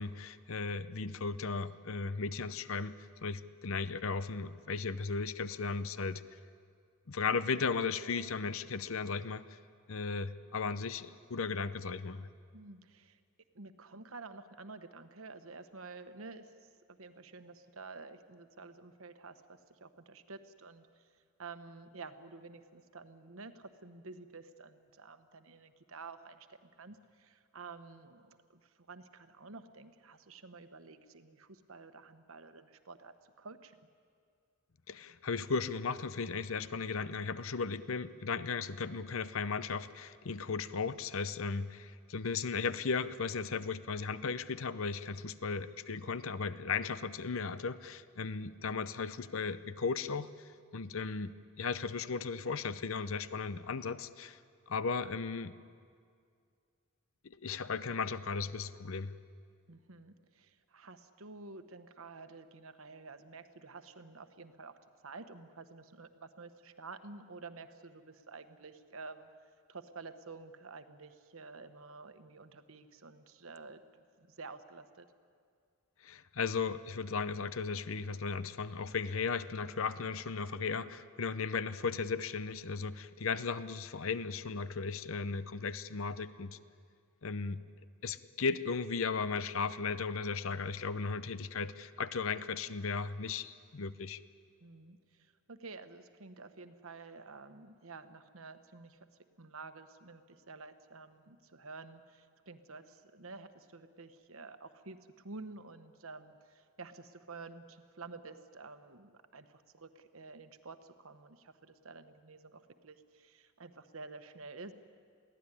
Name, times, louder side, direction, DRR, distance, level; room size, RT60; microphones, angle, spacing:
voice 1, 0.0-3.0 3.2-6.2 7.1-9.4 9.9-12.3 34.9-54.4 54.7-55.5 57.2-59.1 76.0-86.6 87.2-87.6 88.0-94.2, left 5 dB, 65° left, 14 dB, 0.7 m, -36 dB
voice 2, 12.5-13.2 13.5-16.5 16.9-21.1 21.4-33.9 59.7-64.8 65.0-69.3 69.7-75.1 94.6-99.0 99.4-105.0 105.2-114.7, right 3 dB, 70° right, 9 dB, 1.2 m, -50 dB
22.5 x 16.5 x 9.9 m, 2.2 s
head